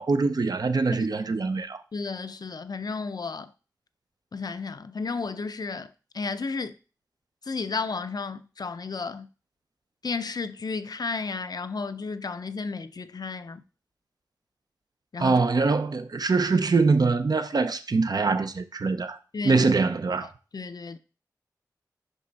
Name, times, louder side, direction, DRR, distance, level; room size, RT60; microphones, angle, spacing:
voice 1, 0.0-1.8 15.2-19.2 19.4-20.3, right 4 dB, 65° right, 0.5 m, -23 dB
voice 2, 1.9-3.5 4.3-6.7 7.4-9.3 10.0-13.6 15.1-15.4 19.3-19.7 20.2-21.0, left 4 dB, 65° left, 0.5 m, -33 dB
5.6 x 5.3 x 4.1 m
wide cardioid pair, 45°, 7 cm